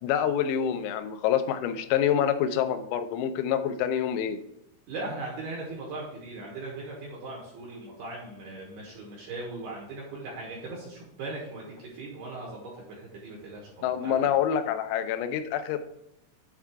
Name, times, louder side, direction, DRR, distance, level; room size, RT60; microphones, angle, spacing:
voice 1, 0.0-4.4 13.8-15.8, left 9 dB, 85° left, 9 dB, 3.3 m, -26 dB
voice 2, 4.9-14.3, right 2 dB, 70° right, -3 dB, 2.5 m, -39 dB
8.4 x 3.7 x 4.5 m, 0.81 s
omnidirectional pair, 6.0 m